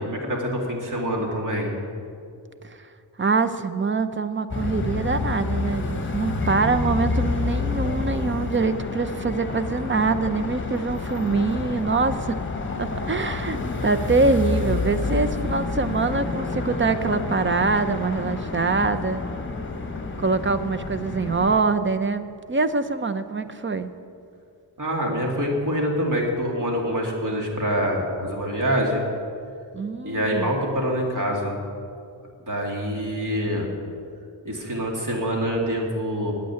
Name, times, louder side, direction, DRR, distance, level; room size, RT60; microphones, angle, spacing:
voice 1, 0.0-1.7 13.5-13.8 24.8-29.0 30.0-31.5 32.5-33.7 34.4-36.3, equal, 45° right, 0 dB, 2.6 m, -25 dB
voice 2, 3.2-12.4 12.8-19.2 20.2-23.9 29.7-30.6, right 4 dB, 30° right, 11 dB, 0.6 m, -24 dB
sound 1, 4.5-21.6, left 3 dB, 25° left, 1.2 m, -28 dB
9.1 x 8.4 x 9.5 m, 2.4 s
cardioid pair, 85°, 43 cm